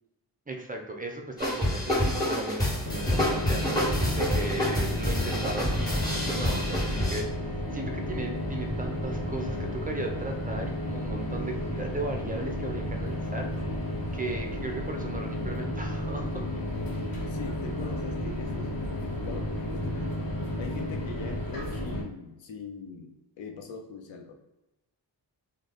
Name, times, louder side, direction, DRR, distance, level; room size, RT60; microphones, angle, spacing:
voice 1, 0.5-7.3 7.7-13.7 14.1-16.5, right 2 dB, 20° right, 3 dB, 0.6 m, -36 dB
sound 1, 1.4-7.2, equal, 10° left, 1.4 m, -28 dB
sound 2, 2.8-22.0, left 1 dB, 50° left, 1.0 m, -32 dB
voice 2, 17.3-24.3, left 4 dB, 90° left, 3 dB, 0.6 m, -42 dB
3.1 x 2.1 x 4.0 m, 0.97 s
cardioid pair, 70°, 44 cm